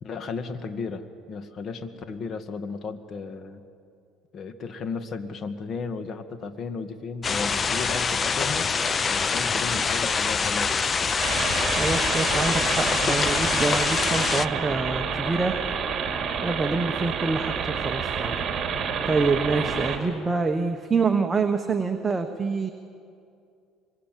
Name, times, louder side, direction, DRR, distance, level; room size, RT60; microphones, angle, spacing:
voice 1, 0.0-3.6 4.3-8.7 9.1-10.9 19.5-19.7, left 4 dB, 45° left, 9 dB, 1.7 m, -34 dB
sound 1, 7.2-14.5, left 5 dB, 30° left, 0.6 m, -25 dB
sound 2, 11.2-20.0, right 6 dB, 40° right, 3.1 m, -29 dB
voice 2, 11.8-15.6 16.4-18.4 19.1-22.7, right 4 dB, 20° right, 5 dB, 1.2 m, -26 dB
25.5 x 23.0 x 7.6 m, 2.4 s
cardioid pair, 115°, 0 cm